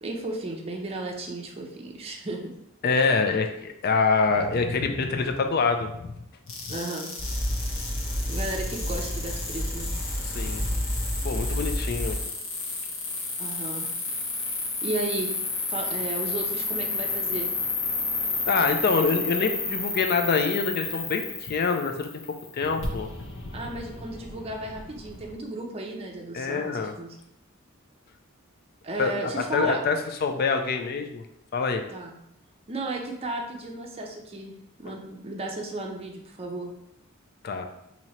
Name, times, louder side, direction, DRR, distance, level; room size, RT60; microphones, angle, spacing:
voice 1, 0.0-2.5 6.7-7.1 8.3-9.9 13.4-13.9 14.8-15.3 15.7-17.5 23.5-27.2 28.8-29.8 31.9-32.2 32.7-34.5 34.8-36.7, right 2 dB, 30° right, 0 dB, 0.5 m, -34 dB
voice 2, 2.8-6.2 10.2-10.7 11.2-12.2 18.5-22.1 22.5-23.1 26.3-26.9 29.0-31.2 31.5-31.8 37.4-37.7, left 4 dB, 50° left, 6 dB, 0.4 m, -25 dB
sound 1, 6.5-25.4, left 4 dB, 80° left, 0.8 m, -32 dB
sound 2, 7.2-12.2, equal, 5° right, 1.0 m, -30 dB
2.9 x 2.8 x 4.3 m, 0.82 s
head